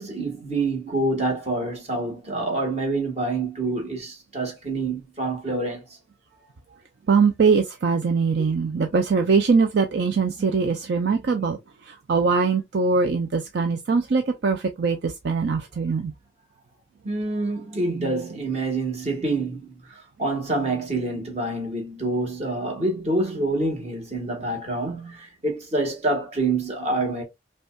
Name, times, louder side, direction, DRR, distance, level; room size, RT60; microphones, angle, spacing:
voice 1, 0.0-5.8 8.4-8.5 17.0-27.2, right 2 dB, 35° right, 1.3 m, -27 dB
voice 2, 7.1-16.1, right 5 dB, 55° right, 0.4 m, -22 dB
5.2 x 2.3 x 2.2 m
head